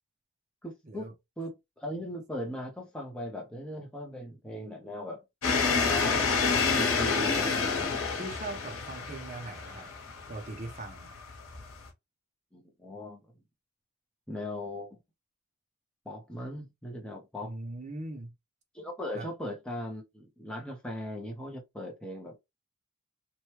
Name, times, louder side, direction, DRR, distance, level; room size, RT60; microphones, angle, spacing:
voice 1, 0.6-5.2 5.7-6.2 6.7-8.0 12.5-13.2 14.3-15.0 16.1-17.6 18.7-22.4, left 1 dB, 5° left, 0.7 m, -38 dB
sound 1, 5.4-11.9, left 5 dB, 85° left, 1.0 m, -29 dB
voice 2, 7.0-7.5 8.2-9.9 10.3-11.1 17.4-18.3 19.1-19.3, right 2 dB, 35° right, 0.7 m, -40 dB
3.0 x 2.2 x 3.0 m
head